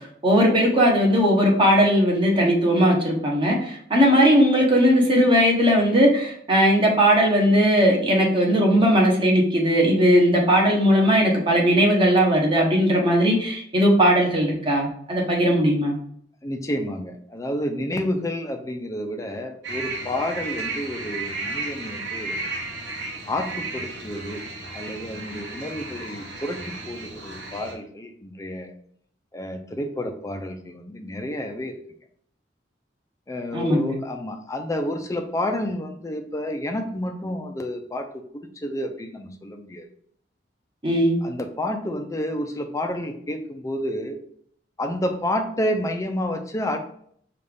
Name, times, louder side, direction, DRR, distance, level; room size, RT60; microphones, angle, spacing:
voice 1, 0.2-16.0 33.5-33.9 40.8-41.2, equal, 30° right, -1 dB, 1.1 m, -18 dB
voice 2, 16.4-22.4 23.3-24.4 24.7-28.7 29.3-31.8 33.3-39.9 41.2-44.2 44.8-46.8, left 1 dB, 20° left, 5 dB, 0.5 m, -30 dB
sound 1, 19.6-27.7, right 3 dB, 85° right, 1.0 m, -34 dB
5.3 x 2.5 x 3.4 m, 0.63 s
head